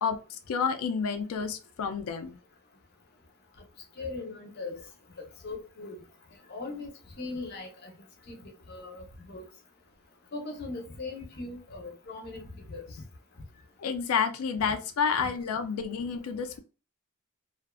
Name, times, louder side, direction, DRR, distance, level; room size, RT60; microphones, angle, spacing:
voice 1, 0.0-2.4 13.8-16.6, left 6 dB, 80° left, 0.4 m, -30 dB
voice 2, 4.0-4.8 5.4-6.0 6.5-7.9 8.3-9.4 10.3-12.8 15.1-15.3, left 3 dB, 45° left, 0.7 m, -39 dB
2.5 x 2.3 x 2.2 m
head